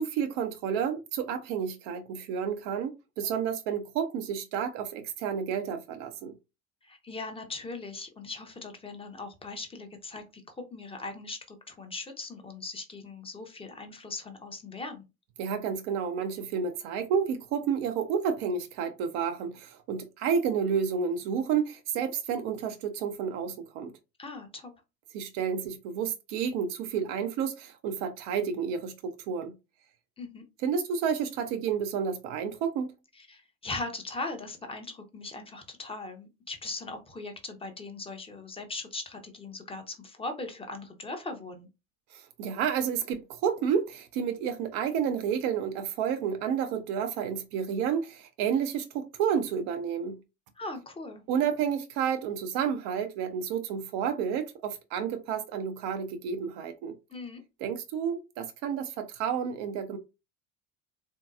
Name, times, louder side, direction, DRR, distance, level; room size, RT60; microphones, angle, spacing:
voice 1, 0.0-6.4 15.4-23.9 25.1-29.5 30.6-32.9 42.1-50.2 51.3-57.0 57.6-60.0, right 7 dB, 45° right, 0.5 m, -30 dB
voice 2, 6.8-15.0 24.2-24.7 30.2-30.4 33.1-41.7 50.6-51.2 57.1-57.4, left 3 dB, 15° left, 0.8 m, -39 dB
3.7 x 2.7 x 2.4 m
figure-of-eight pair, 65°, 38 cm